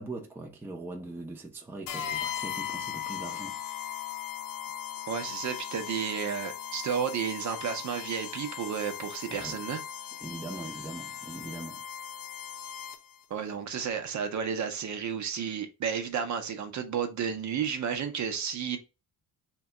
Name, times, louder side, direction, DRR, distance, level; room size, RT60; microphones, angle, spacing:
voice 1, 0.0-3.6 9.3-9.6 10.2-11.8, right 2 dB, 5° right, 0.5 m, -41 dB
sound 1, 1.9-13.2, left 9 dB, 60° left, 0.6 m, -38 dB
voice 2, 5.1-9.8 13.3-18.8, right 7 dB, 50° right, 0.6 m, -32 dB
2.7 x 2.2 x 3.7 m
cardioid pair, 130°, 37 cm